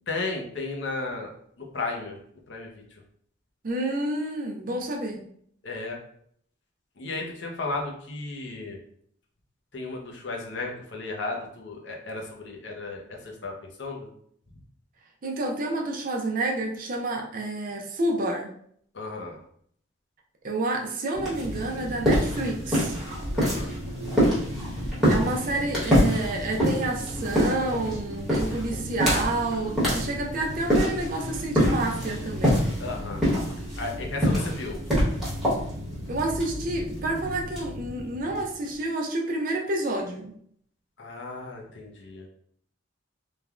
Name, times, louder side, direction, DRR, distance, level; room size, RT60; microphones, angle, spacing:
voice 1, 0.1-1.3 1.6-2.2 2.5-2.8 5.6-6.0 7.0-8.8 9.7-13.5 13.8-14.1 18.9-19.4 23.3-23.7 32.8-33.2 33.8-34.8 41.0-42.3, left 3 dB, 65° left, 0 dB, 0.6 m, -34 dB
voice 2, 3.6-5.2 15.2-18.5 20.4-23.0 25.1-32.7 36.1-40.3, right 2 dB, 45° right, 2 dB, 0.4 m, -29 dB
sound 1, 21.1-38.7, equal, ahead, 1.1 m, -26 dB
3.1 x 2.2 x 2.4 m, 0.64 s
head